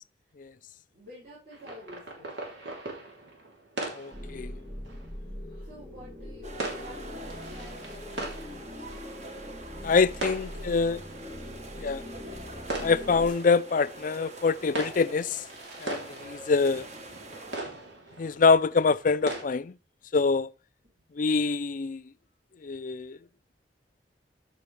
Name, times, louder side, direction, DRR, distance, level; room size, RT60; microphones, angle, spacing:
voice 1, 0.9-2.4 5.6-9.3 10.2-10.8 20.9-21.0, equal, 55° right, 6.2 m, -51 dB
sound 1, 1.5-19.4, right 2 dB, 80° right, 3.3 m, -41 dB
voice 2, 3.9-4.5 9.8-11.0 11.8-12.0 12.8-15.4 15.8-16.8 18.2-19.8 20.1-20.5 21.2-22.0 22.6-23.2, left 4 dB, 50° left, 0.5 m, -25 dB
sound 2, 4.1-13.3, left 1 dB, 25° right, 3.1 m, -42 dB
sound 3, 6.4-17.6, right 2 dB, 40° right, 1.3 m, -45 dB
13.5 x 5.9 x 3.3 m
head